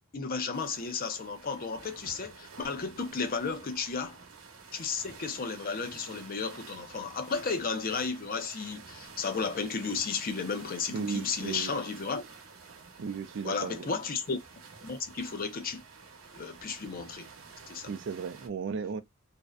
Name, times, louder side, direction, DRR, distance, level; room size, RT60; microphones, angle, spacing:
voice 1, 0.1-4.2 4.7-12.2 13.4-14.4 14.8-15.8 16.3-17.3 17.7-17.9, left 5 dB, 45° left, 0.5 m, -33 dB
sound 1, 0.5-18.5, right 5 dB, 85° right, 0.8 m, -50 dB
voice 2, 10.9-11.7 13.0-13.9 17.9-19.0, right 5 dB, 60° right, 0.4 m, -35 dB
2.5 x 2.1 x 2.4 m
head